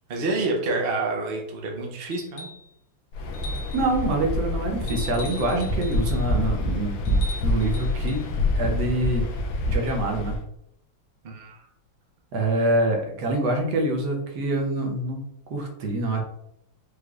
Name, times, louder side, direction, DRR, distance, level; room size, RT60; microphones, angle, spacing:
voice 1, 0.1-2.5 11.2-11.6, right 2 dB, 50° right, -1 dB, 0.7 m, -28 dB
sound 1, 2.1-2.7 3.3-3.9 4.9-6.3 7.1-8.3 9.9-10.0, left 2 dB, 60° left, 1.3 m, -41 dB
Waves surf, 3.1-10.4, left 1 dB, 90° left, 1.3 m, -27 dB
voice 2, 3.7-8.2 8.5-9.3 9.7-10.4 12.3-16.2, right 2 dB, 70° right, 1 dB, 1.3 m, -26 dB
4.9 x 3.1 x 2.4 m, 0.77 s
omnidirectional pair, 2.0 m